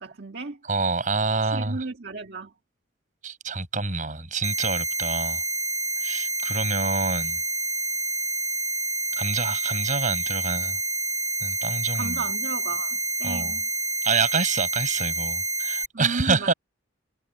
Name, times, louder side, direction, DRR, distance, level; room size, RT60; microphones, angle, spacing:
voice 1, 0.0-0.6 1.5-2.5 12.0-13.7 15.9-16.5, right 3 dB, 60° right, 1.7 m, -34 dB
voice 2, 0.7-1.8 3.2-5.4 6.0-7.4 9.2-10.8 11.4-12.2 13.2-13.5 14.0-16.5, right 4 dB, 45° right, 6.2 m, -27 dB
sound 1, 4.4-15.9, right 3 dB, 15° right, 1.3 m, -28 dB
head